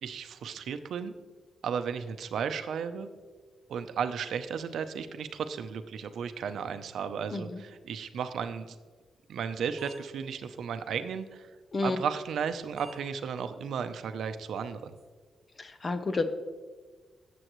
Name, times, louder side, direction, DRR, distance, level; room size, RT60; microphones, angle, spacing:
voice 1, 0.0-1.1 1.6-3.1 3.7-8.8 9.3-11.5 11.8-14.9, right 7 dB, 80° right, 9 dB, 0.6 m, -34 dB
sound 1, 9.8-10.2 10.7-10.8 12.2-12.4 12.7-12.9 13.3-13.4 13.8-13.9 14.3-14.4 14.6-15.0, right 4 dB, 50° right, 2.3 m, -50 dB
voice 2, 15.6-16.2, left 3 dB, 30° left, 9 dB, 0.6 m, -30 dB
14.5 x 7.7 x 3.1 m, 1.5 s
wide cardioid pair, 160°, 0 cm